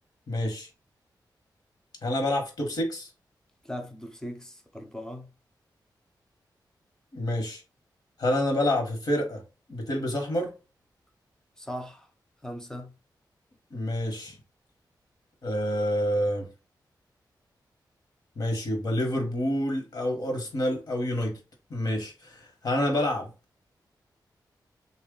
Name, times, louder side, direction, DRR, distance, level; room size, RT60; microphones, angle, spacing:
voice 1, 0.3-0.7 2.0-3.1 7.1-7.6 8.2-9.4 9.7-10.5 13.7-14.4 15.4-16.5 18.4-21.4 21.7-23.3, left 1 dB, 60° left, 1.2 m, -28 dB
voice 2, 3.6-5.3 11.6-12.1 12.4-12.9, equal, 10° left, 0.6 m, -39 dB
3.3 x 2.4 x 3.7 m
wide cardioid pair, 125°, 8 cm